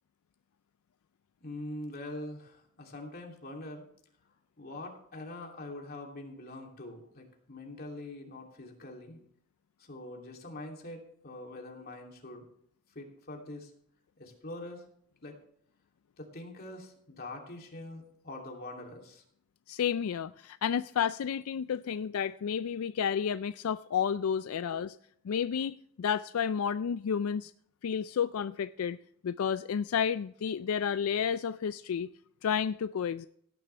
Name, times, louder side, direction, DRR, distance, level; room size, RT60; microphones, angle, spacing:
voice 1, 1.4-3.8 4.6-9.2 9.8-12.5 12.9-13.7 14.2-14.8 15.2-15.4 16.2-19.2 24.7-24.9, left 1 dB, 45° left, 2.8 m, -44 dB
voice 2, 19.7-24.9 25.3-27.5 27.8-29.0 29.2-32.1 32.4-33.3, left 7 dB, 80° left, 0.4 m, -31 dB
17.0 x 10.5 x 3.3 m
head